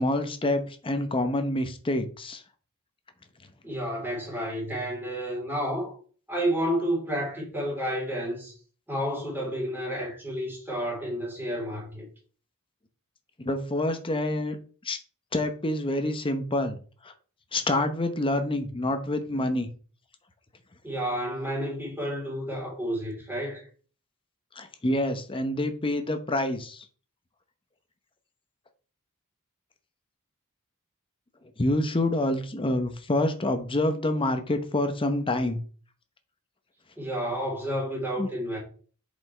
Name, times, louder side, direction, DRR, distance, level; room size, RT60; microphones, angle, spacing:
voice 1, 0.0-2.4 13.4-14.6 14.8-15.0 15.3-16.8 17.0-17.1 17.5-19.7 24.6-26.8 31.6-35.6 38.2-38.3, left 1 dB, 25° left, 0.8 m, -27 dB
voice 2, 3.6-6.0 6.3-8.5 8.9-12.1 20.8-23.7 37.0-38.6, equal, 10° right, 3.7 m, -30 dB
7.4 x 5.2 x 3.3 m
head